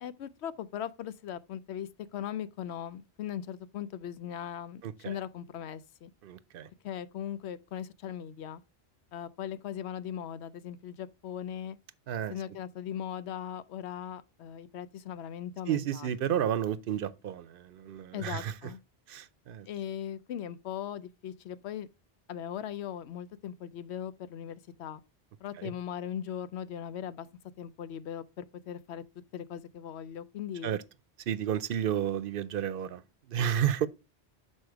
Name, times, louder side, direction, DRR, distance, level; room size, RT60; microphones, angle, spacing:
voice 1, 0.0-6.1 6.8-8.6 9.1-11.8 12.3-16.4 18.1-18.8 19.6-21.9 22.3-25.0 25.4-27.3 27.6-29.0 29.3-30.8, left 9 dB, 80° left, 0.8 m, -39 dB
voice 2, 4.8-5.2 6.2-6.7 12.1-12.4 15.7-18.5 19.1-19.7 25.6-25.7 30.6-30.8 31.3-33.0 33.3-33.9, right 9 dB, 60° right, 0.7 m, -31 dB
6.5 x 4.4 x 4.6 m
omnidirectional pair, 1.1 m